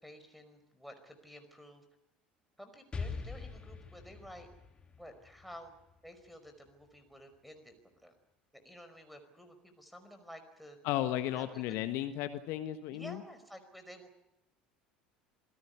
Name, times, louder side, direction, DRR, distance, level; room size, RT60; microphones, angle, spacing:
voice 1, 0.0-1.8 2.6-4.5 4.9-5.7 6.0-8.1 8.5-10.8 11.3-11.8 12.9-14.2, equal, ahead, 6 dB, 5.1 m, -52 dB
Explosion, 2.9-6.7, left 4 dB, 20° left, 2.9 m, -44 dB
voice 2, 10.8-13.2, left 13 dB, 55° left, 10 dB, 1.4 m, -34 dB
27.0 x 17.5 x 8.3 m, 0.91 s
figure-of-eight pair, 70°, 5 cm